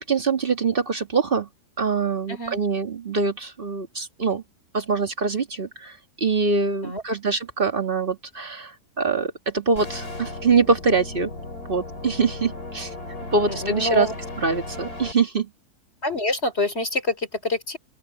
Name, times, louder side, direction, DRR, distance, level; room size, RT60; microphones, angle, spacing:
voice 1, 0.0-1.5 1.8-4.4 4.7-11.3 11.7-12.9 13.3-14.1 14.4-15.5, right 4 dB, 35° right, 2.0 m, -24 dB
sound 1, 9.8-15.1, left 2 dB, 75° left, 5.1 m, -36 dB
voice 2, 13.5-14.2 16.0-17.8, left 1 dB, 40° left, 4.3 m, -26 dB
open air
omnidirectional pair, 1.7 m